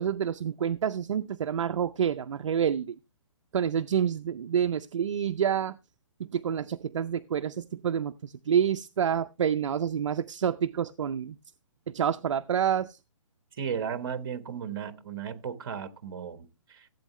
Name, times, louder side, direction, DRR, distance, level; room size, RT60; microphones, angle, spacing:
voice 1, 0.0-3.0 3.5-5.8 6.2-11.4 11.9-13.0, right 8 dB, 65° right, 0.5 m, -28 dB
voice 2, 13.5-16.9, right 7 dB, 45° right, 1.3 m, -35 dB
15.0 x 8.2 x 3.1 m
hypercardioid pair, 170°, 17 cm